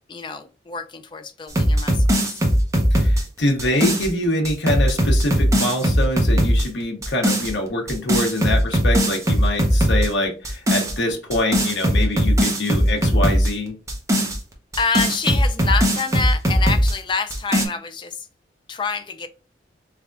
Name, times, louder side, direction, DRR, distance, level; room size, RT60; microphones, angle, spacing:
voice 1, 0.1-2.4 14.8-18.3 18.7-19.3, left 5 dB, 25° left, 0.3 m, -27 dB
sound 1, 1.5-4.1 4.4-6.7 7.0-7.5 7.9-10.1 10.4-10.9 11.3-13.5 13.9-16.9 17.3-17.6, equal, 15° right, 0.7 m, -19 dB
voice 2, 2.9-13.7, left 1 dB, 80° left, 0.8 m, -24 dB
3.5 x 3.4 x 2.4 m
head